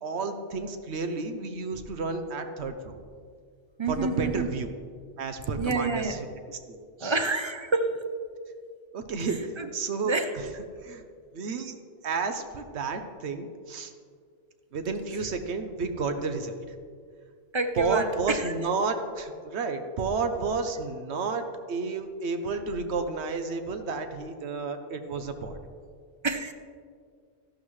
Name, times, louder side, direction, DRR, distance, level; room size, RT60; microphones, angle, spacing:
voice 1, 0.0-3.0 3.9-4.7 5.2-7.1 8.9-10.5 10.8-11.0 11.3-11.8 12.0-13.9 14.7-16.6 17.8-25.6, right 4 dB, 70° right, 8 dB, 1.0 m, -31 dB
voice 2, 3.8-4.5 5.6-6.2 7.0-8.1 9.6-9.7 10.0-10.3 17.5-18.5 26.2-26.5, right 3 dB, 35° right, 7 dB, 0.4 m, -28 dB
12.5 x 11.5 x 3.2 m, 2.1 s
omnidirectional pair, 1.2 m